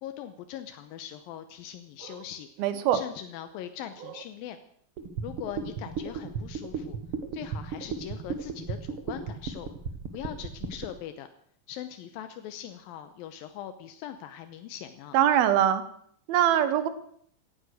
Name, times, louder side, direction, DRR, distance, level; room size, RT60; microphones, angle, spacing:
voice 1, 0.0-2.5 2.9-4.6 5.2-7.0 7.3-9.7 10.1-11.3 11.7-15.2, left 10 dB, 80° left, 9 dB, 2.6 m, -41 dB
voice 2, 2.6-3.0 15.1-15.8 16.3-16.9, right 10 dB, 85° right, 12 dB, 3.0 m, -22 dB
sound 1, 5.0-10.9, right 6 dB, 50° right, 1.9 m, -34 dB
17.5 x 12.0 x 6.4 m, 0.65 s
omnidirectional pair, 4.2 m